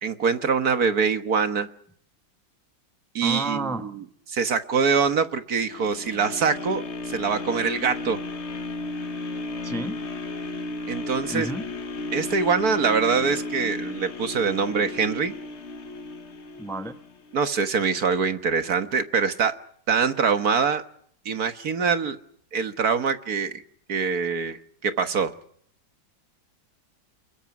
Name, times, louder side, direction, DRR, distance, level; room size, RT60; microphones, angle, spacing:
voice 1, 0.0-1.7 3.2-3.9 4.3-8.2 10.9-11.5 12.1-15.3 17.3-19.5 19.9-20.8 21.3-22.2 22.5-23.6 23.9-25.3, right 5 dB, 55° right, 9 dB, 1.8 m, -24 dB
voice 2, 3.2-3.9 9.6-10.0 11.3-11.7 16.6-17.0, right 1 dB, ahead, 8 dB, 0.8 m, -31 dB
sound 1, 5.6-17.7 18.2-18.3, left 2 dB, 40° left, 1.3 m, -34 dB
28.0 x 22.5 x 6.1 m, 0.65 s
omnidirectional pair, 2.0 m